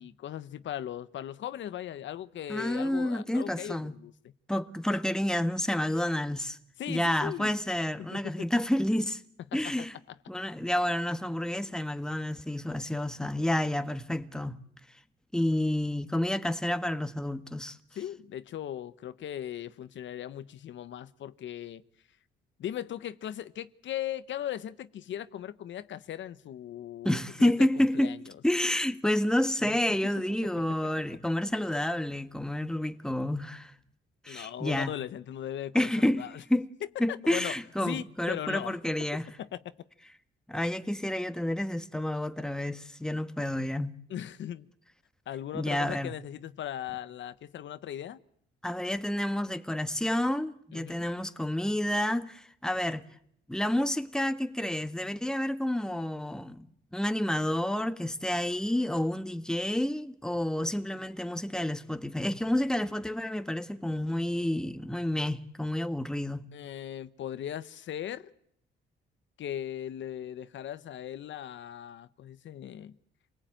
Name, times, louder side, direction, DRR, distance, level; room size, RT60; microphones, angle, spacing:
voice 1, 0.0-4.1 6.8-7.6 8.0-8.3 9.6-9.7 17.9-21.8 22.6-28.4 29.6-30.0 34.3-36.4 37.1-37.5 37.8-38.8 39.4-39.6 44.1-44.7 45.3-48.2 50.7-51.1 66.5-68.3 69.4-73.0, left 11 dB, 70° left, 1.1 m, -38 dB
voice 2, 2.5-3.9 4.5-6.6 6.9-9.2 9.5-9.9 10.3-14.6 15.3-17.8 27.0-28.1 28.4-33.7 34.2-34.9 35.7-36.7 37.0-39.3 40.5-43.9 45.5-46.1 48.6-53.0 53.5-56.7 56.9-66.4, left 1 dB, 5° left, 1.5 m, -29 dB
28.0 x 19.0 x 9.1 m
cardioid pair, 90°, 20 cm